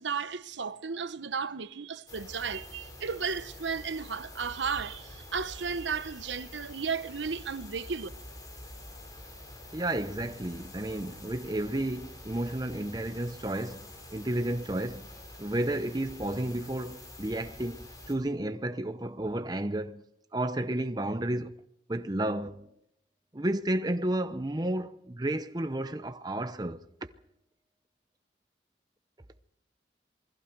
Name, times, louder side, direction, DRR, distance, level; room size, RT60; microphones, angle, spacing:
voice 1, 0.0-8.1, right 5 dB, 80° right, 0.9 m, -34 dB
sound 1, 2.1-18.1, left 1 dB, 20° left, 5.1 m, -47 dB
voice 2, 9.7-13.8 14.1-15.1 15.4-20.0 20.3-21.5 21.9-22.7 23.3-26.8, right 1 dB, 20° right, 0.7 m, -32 dB
27.5 x 21.0 x 4.6 m
head